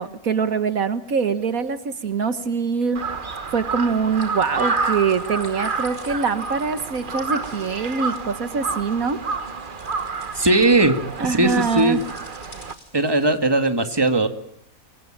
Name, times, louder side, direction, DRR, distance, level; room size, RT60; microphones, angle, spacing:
voice 1, 0.0-3.0 3.5-9.2 11.2-12.0, right 5 dB, 70° right, 11 dB, 1.8 m, -23 dB
Crow, 2.9-12.7, right 4 dB, 35° right, 1.3 m, -29 dB
sound 1, 4.1-13.4, left 1 dB, 45° left, 6.4 m, -49 dB
voice 2, 10.3-11.0 11.2-12.0 12.9-14.3, right 2 dB, 15° right, 7 dB, 2.1 m, -18 dB
26.5 x 23.0 x 8.8 m, 0.68 s
omnidirectional pair, 1.5 m